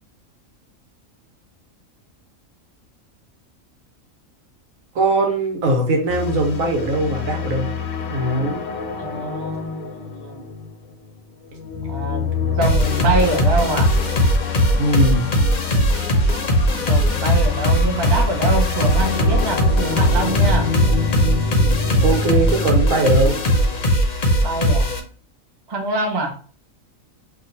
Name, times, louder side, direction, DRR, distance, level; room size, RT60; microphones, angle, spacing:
voice 1, 4.9-7.7 8.1-8.6 14.8-15.3 22.0-23.3, right 2 dB, 85° right, 2 dB, 1.3 m, -20 dB
sound 1, 6.1-23.8, left 6 dB, 90° left, 1.1 m, -27 dB
voice 2, 9.0-10.4 11.9-13.9 16.9-20.7 24.4-24.9 25.7-26.3, right 2 dB, 30° right, 2 dB, 0.5 m, -25 dB
sound 2, 12.6-25.0, equal, 50° left, 0.6 m, -19 dB
2.8 x 2.3 x 3.9 m, 0.41 s
omnidirectional pair, 1.4 m